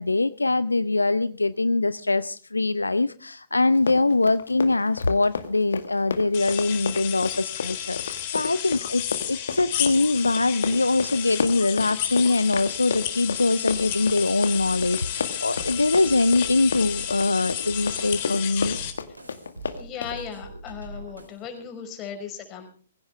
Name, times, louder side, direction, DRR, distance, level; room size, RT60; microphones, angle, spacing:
voice 1, 0.0-9.0 9.3-18.8, left 3 dB, 80° left, 15 dB, 0.7 m, -23 dB
Run, 3.7-20.2, left 5 dB, 65° left, 2.0 m, -32 dB
sound 1, 6.3-18.9, left 11 dB, 40° left, 3.8 m, -32 dB
sound 2, 13.7-21.7, right 2 dB, 85° right, 4.2 m, -42 dB
voice 2, 19.7-22.7, left 8 dB, 25° left, 5 dB, 5.5 m, -37 dB
23.0 x 16.0 x 3.4 m, 0.41 s
figure-of-eight pair, 120°, 0 cm